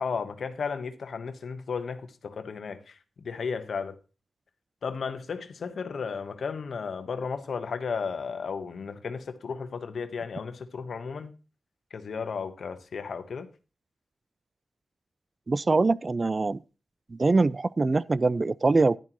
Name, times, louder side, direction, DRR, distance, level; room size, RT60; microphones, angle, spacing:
voice 1, 0.0-3.0 3.2-4.0 4.8-11.3 11.9-13.5, left 5 dB, 80° left, 1.1 m, -34 dB
voice 2, 15.5-16.6 17.1-19.0, right 3 dB, 40° right, 0.4 m, -23 dB
11.0 x 10.5 x 3.0 m
cardioid pair, 70°, 0 cm